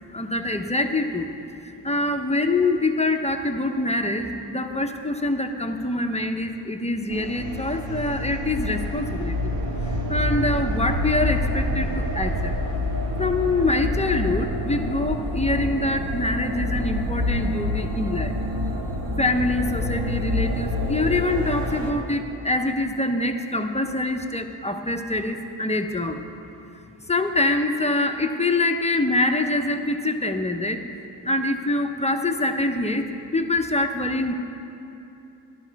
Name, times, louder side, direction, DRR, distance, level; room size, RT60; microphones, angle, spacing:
voice 1, 0.1-1.3 1.8-9.5 10.1-12.6 13.2-18.3 19.2-26.2 27.1-30.8 31.2-33.1 33.3-34.3, left 2 dB, 15° left, 5 dB, 0.6 m, -25 dB
sound 1, 7.1-21.9, left 1 dB, 85° right, 1.5 m, -27 dB
13.0 x 11.5 x 4.6 m, 2.9 s
wide cardioid pair, 110°, 41 cm